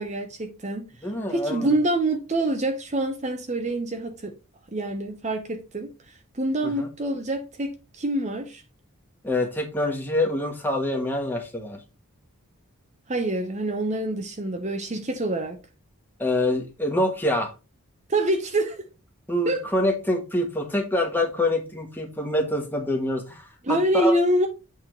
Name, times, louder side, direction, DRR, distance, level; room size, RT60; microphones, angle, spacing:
voice 1, 0.0-0.9 1.3-4.3 4.7-8.6 13.1-15.6 18.1-18.9 19.4-19.6 23.6-24.5, right 1 dB, 30° right, 0.7 m, -26 dB
voice 2, 1.0-1.7 6.6-6.9 9.2-11.8 16.2-17.5 19.3-24.1, left 1 dB, 10° left, 1.3 m, -26 dB
8.3 x 3.5 x 4.5 m
head